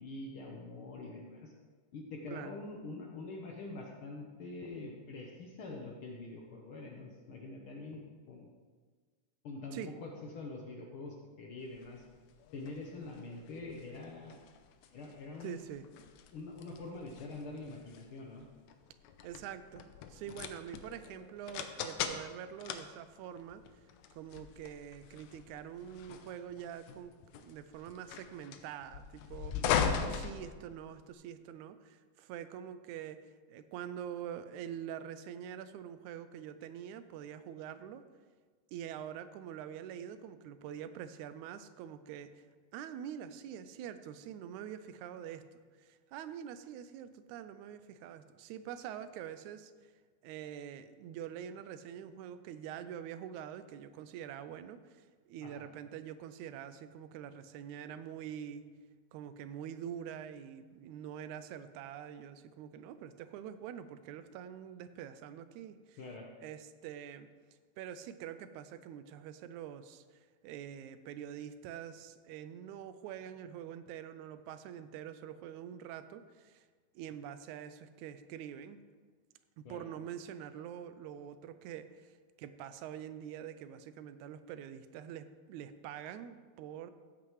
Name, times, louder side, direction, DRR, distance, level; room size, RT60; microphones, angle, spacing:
voice 1, 0.0-1.5 1.9-8.0 8.3-8.5 9.4-12.0 12.5-14.4 14.9-15.6 16.3-18.5 55.4-55.6 66.0-66.3 79.6-79.8, left 3 dB, 65° left, 0 dB, 1.4 m, -45 dB
sound 1, 11.8-31.1, left 7 dB, 85° left, 2.1 m, -40 dB
voice 2, 15.4-15.9 19.2-23.6 24.1-29.6 29.8-38.0 38.7-42.4 42.7-49.7 50.2-58.7 59.1-66.0 66.4-67.3 67.8-70.0 70.4-76.6 77.0-78.8 79.6-82.1 82.4-86.9, right 9 dB, 85° right, 12 dB, 2.0 m, -45 dB
15.0 x 8.4 x 3.1 m, 1.5 s
omnidirectional pair, 3.3 m